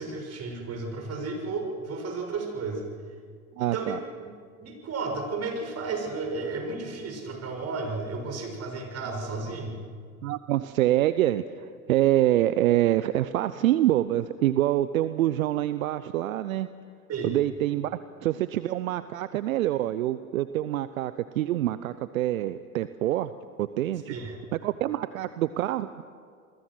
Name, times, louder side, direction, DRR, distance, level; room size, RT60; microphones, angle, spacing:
voice 1, 0.0-2.8 3.6-4.3 4.6-9.8 17.1-17.4 24.1-24.4, right 3 dB, 35° right, 3 dB, 6.6 m, -33 dB
voice 2, 3.6-4.0 10.2-16.7 17.2-23.3 23.6-24.1 24.6-26.0, right 13 dB, 75° right, 13 dB, 0.8 m, -26 dB
29.0 x 21.5 x 6.3 m, 2.1 s
hypercardioid pair, 85°, 42 cm